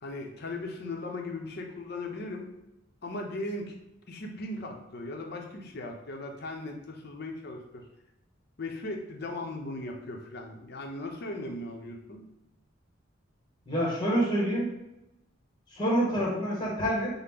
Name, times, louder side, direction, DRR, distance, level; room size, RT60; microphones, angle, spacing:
voice 1, 0.0-2.5 3.0-3.7 4.1-7.8 8.6-12.2, left 2 dB, 55° left, 2 dB, 0.7 m, -38 dB
voice 2, 13.7-14.7 15.7-17.1, equal, 20° left, -3 dB, 1.1 m, -27 dB
5.8 x 2.1 x 3.5 m, 0.91 s
head